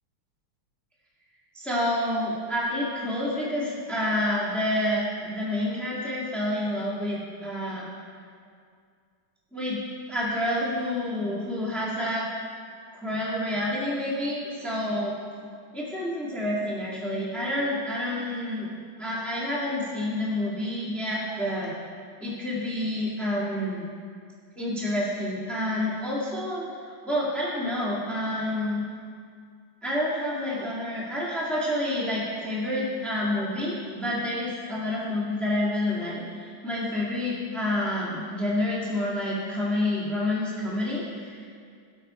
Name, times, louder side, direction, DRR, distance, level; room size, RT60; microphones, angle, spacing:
voice 1, 1.5-7.9 9.5-9.8 10.1-12.2 13.0-15.2 15.7-18.7 19.0-21.7 22.2-23.8 24.6-26.6 27.0-28.8 29.8-41.4, left 1 dB, ahead, -6 dB, 1.8 m, -28 dB
18.0 x 6.2 x 4.4 m, 2.2 s
omnidirectional pair, 2.3 m